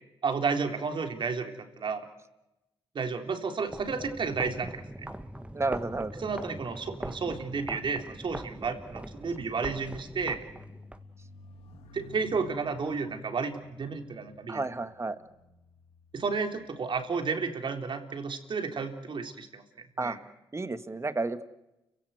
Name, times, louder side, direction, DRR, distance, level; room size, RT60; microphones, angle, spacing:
voice 1, 0.2-2.1 2.9-5.1 6.2-10.4 11.9-14.6 16.1-19.6 20.0-20.2, right 5 dB, 60° right, 5 dB, 3.6 m, -32 dB
sound 1, 3.6-11.0, right 1 dB, 10° right, 1.8 m, -41 dB
voice 2, 5.5-6.1 14.5-15.2 20.0-20.2 20.5-21.4, right 3 dB, 30° right, 10 dB, 1.9 m, -31 dB
sound 2, 9.2-17.1 17.9-18.2, left 3 dB, 90° left, 2.4 m, -54 dB
30.0 x 16.5 x 8.1 m, 0.94 s
supercardioid pair, 55°, 10 cm